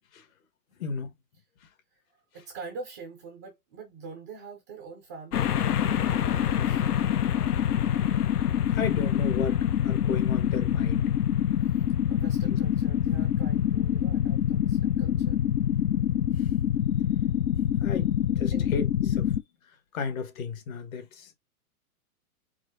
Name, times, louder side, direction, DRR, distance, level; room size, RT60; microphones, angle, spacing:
voice 1, 0.8-1.1 8.7-11.1 12.4-12.6 13.1-13.3 17.8-19.3 19.9-21.3, left 5 dB, 60° left, 1.6 m, -34 dB
voice 2, 2.3-6.8 12.1-15.4 18.5-18.7, right 4 dB, 15° right, 0.3 m, -44 dB
sound 1, 5.3-19.4, left 10 dB, 85° left, 0.7 m, -25 dB
4.7 x 4.2 x 2.6 m
hypercardioid pair, 130°, 45 cm